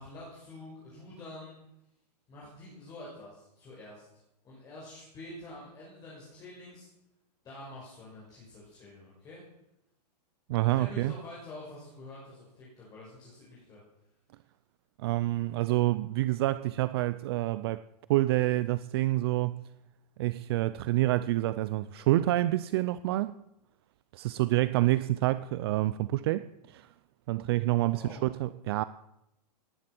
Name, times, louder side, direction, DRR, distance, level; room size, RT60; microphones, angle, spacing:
voice 1, 0.0-1.6 2.3-6.9 7.4-9.4 10.7-13.8 27.9-28.2, left 1 dB, 15° left, 5.6 m, -47 dB
voice 2, 10.5-11.1 15.0-17.8 18.1-19.6 20.2-23.4 24.1-26.9 27.3-28.8, right 16 dB, 35° right, 0.5 m, -28 dB
18.5 x 11.0 x 6.0 m
hypercardioid pair, 165°, 21 cm